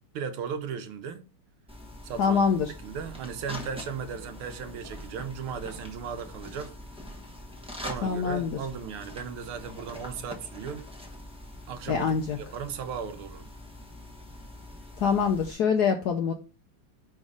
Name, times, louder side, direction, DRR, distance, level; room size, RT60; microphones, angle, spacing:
voice 1, 0.1-1.2 2.0-2.4 2.8-6.7 7.8-10.9 11.7-13.5, right 7 dB, 80° right, 1.6 m, -36 dB
sound 1, 1.7-15.5, left 1 dB, 5° right, 0.6 m, -44 dB
voice 2, 2.2-2.7 8.0-8.6 11.9-12.4 15.0-16.3, left 6 dB, 75° left, 0.9 m, -25 dB
5.3 x 4.1 x 4.8 m
omnidirectional pair, 2.4 m